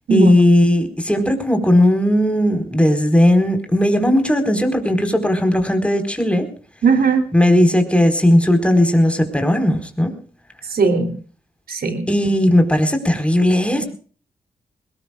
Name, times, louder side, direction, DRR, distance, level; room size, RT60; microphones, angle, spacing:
voice 1, 0.1-6.5 7.3-10.1 12.1-13.8, left 1 dB, 5° left, 6 dB, 4.5 m, -16 dB
voice 2, 6.8-7.2 10.7-11.1 11.7-12.1, right 4 dB, 70° right, 6 dB, 3.1 m, -17 dB
21.0 x 19.0 x 2.4 m, 0.41 s
cardioid pair, 50°, 16 cm